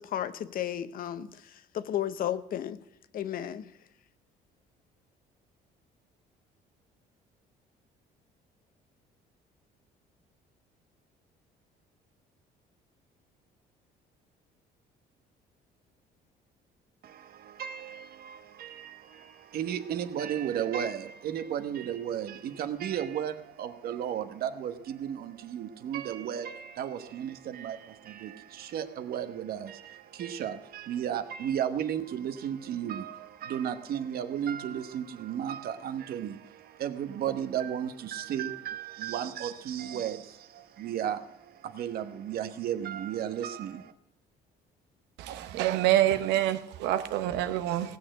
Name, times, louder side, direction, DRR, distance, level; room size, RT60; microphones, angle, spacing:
voice 1, 0.0-2.8 3.1-3.7, left 10 dB, 60° left, 14 dB, 0.8 m, -33 dB
voice 2, 17.0-43.9, right 9 dB, 65° right, 10 dB, 1.1 m, -34 dB
voice 3, 45.2-48.0, right 13 dB, 90° right, 11 dB, 0.9 m, -27 dB
17.5 x 6.6 x 7.8 m, 0.83 s
cardioid pair, 110°, 17 cm